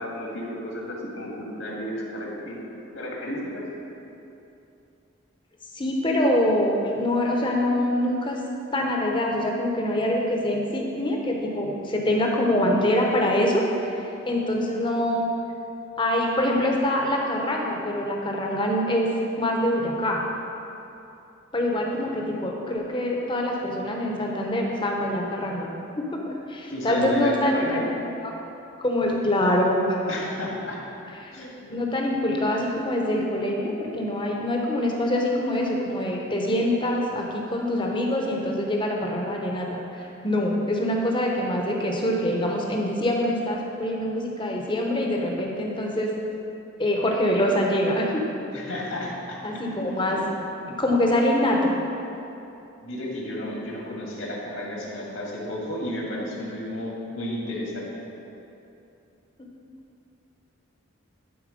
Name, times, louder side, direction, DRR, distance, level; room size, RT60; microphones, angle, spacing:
voice 1, 0.0-2.6 2.9-3.6 21.7-22.1 26.7-27.8 30.1-30.8 31.3-31.7 48.5-49.4 49.7-49.9 50.9-51.0 52.8-57.9, left 1 dB, 70° left, -3 dB, 1.9 m, -32 dB
voice 2, 5.7-8.4 8.7-13.9 14.2-15.3 16.0-19.1 19.4-20.2 21.5-25.7 26.0-27.9 28.2-28.3 28.8-30.1 31.2-31.3 31.7-46.1 46.8-48.2 49.4-50.2 50.8-51.7 59.4-59.5, left 1 dB, 25° left, -1 dB, 0.9 m, -24 dB
11.0 x 4.5 x 5.2 m, 2.8 s
head